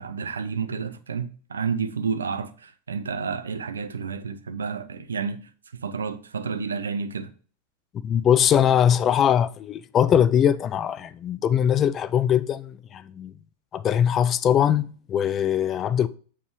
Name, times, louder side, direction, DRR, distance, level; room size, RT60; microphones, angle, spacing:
voice 1, 0.0-7.3, right 5 dB, 70° right, 0.5 m, -30 dB
voice 2, 8.0-13.3 13.7-16.1, left 9 dB, 30° left, 0.3 m, -21 dB
7.1 x 3.3 x 4.6 m
figure-of-eight pair, 90°, 0 cm